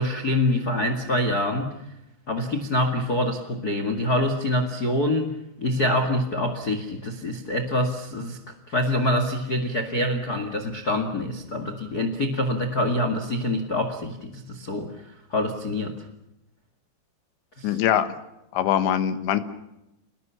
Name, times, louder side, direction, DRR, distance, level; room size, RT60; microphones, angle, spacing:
voice 1, 0.0-1.7 2.3-5.3 5.6-8.4 8.7-16.0 17.6-17.8, left 1 dB, 40° left, 7 dB, 1.3 m, -25 dB
voice 2, 17.6-18.1 18.5-19.4, left 10 dB, 80° left, 11 dB, 3.7 m, -22 dB
28.5 x 20.5 x 7.1 m, 0.88 s
omnidirectional pair, 5.2 m